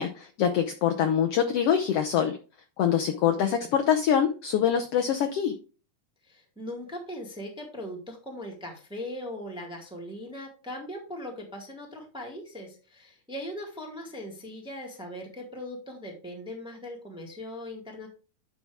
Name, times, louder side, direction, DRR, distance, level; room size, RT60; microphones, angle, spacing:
voice 1, 0.0-2.4 2.8-5.5, left 8 dB, 85° left, 5 dB, 1.3 m, -24 dB
voice 2, 3.1-3.7 6.2-18.1, left 1 dB, ahead, 0 dB, 1.1 m, -39 dB
9.6 x 6.0 x 3.4 m, 0.35 s
omnidirectional pair, 3.6 m